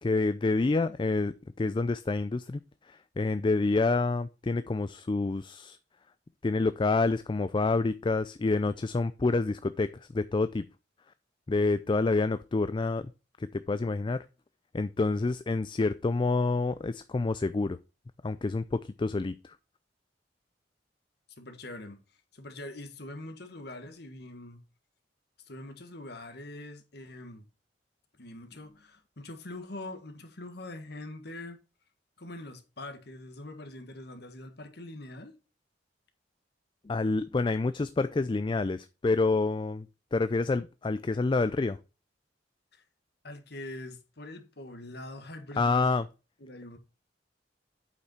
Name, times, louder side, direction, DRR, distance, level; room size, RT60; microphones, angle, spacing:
voice 1, 0.0-2.6 2.9-5.8 6.4-10.6 11.5-13.1 13.4-14.3 14.7-17.8 18.2-19.6 36.8-39.9 40.1-41.8 45.6-46.1, left 3 dB, 25° left, 0.4 m, -28 dB
voice 2, 21.4-22.0 22.3-24.6 25.5-27.4 28.2-31.6 32.2-35.3 42.7-42.8 43.2-46.0 46.4-46.8, left 1 dB, 60° left, 1.7 m, -43 dB
8.3 x 5.4 x 4.4 m
head